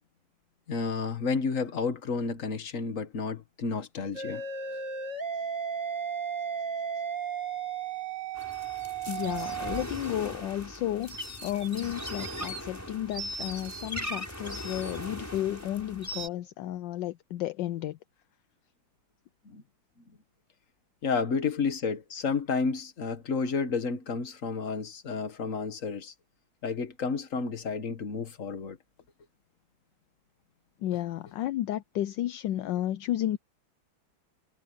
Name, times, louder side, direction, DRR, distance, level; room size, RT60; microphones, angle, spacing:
voice 1, 0.7-4.4 19.5-19.6 21.0-26.1 26.6-28.8, left 5 dB, 45° left, 1.8 m, -31 dB
sound 1, 4.1-9.8, right 6 dB, 40° right, 3.5 m, -34 dB
sound 2, 8.4-16.3, equal, 10° left, 7.3 m, -39 dB
voice 2, 9.1-18.0 30.8-33.4, left 13 dB, 75° left, 1.2 m, -32 dB
omnidirectional pair, 2.1 m